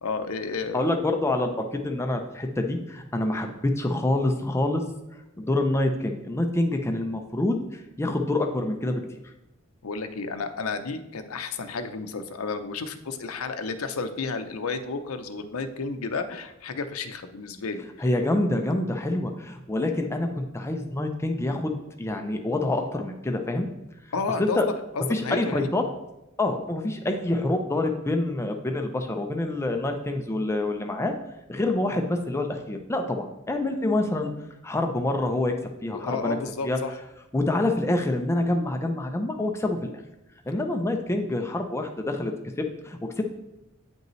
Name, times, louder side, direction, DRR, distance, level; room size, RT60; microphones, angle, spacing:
voice 1, 0.0-0.9 3.4-3.5 9.8-18.1 24.1-25.7 35.9-36.9, left 4 dB, 70° left, 8 dB, 0.6 m, -32 dB
voice 2, 0.7-4.8 5.4-9.0 18.0-21.7 22.0-23.7 24.4-24.7 25.1-25.8 26.4-31.1 31.5-34.3 34.6-35.5 35.8-36.4 36.6-36.8 37.3-39.9 40.5-43.2, left 2 dB, 10° left, 4 dB, 0.5 m, -26 dB
9.0 x 5.3 x 3.1 m, 0.92 s
head